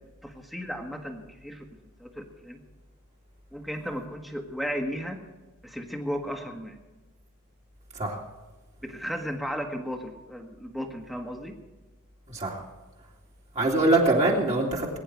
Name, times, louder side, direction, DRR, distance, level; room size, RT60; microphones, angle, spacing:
voice 1, 0.2-1.6 2.0-2.6 3.5-5.2 5.6-6.8 8.8-11.6, equal, ahead, 3 dB, 1.6 m, -35 dB
voice 2, 12.3-12.6 13.5-15.0, right 2 dB, 30° right, -2 dB, 2.6 m, -23 dB
20.5 x 10.0 x 4.7 m, 1.2 s
head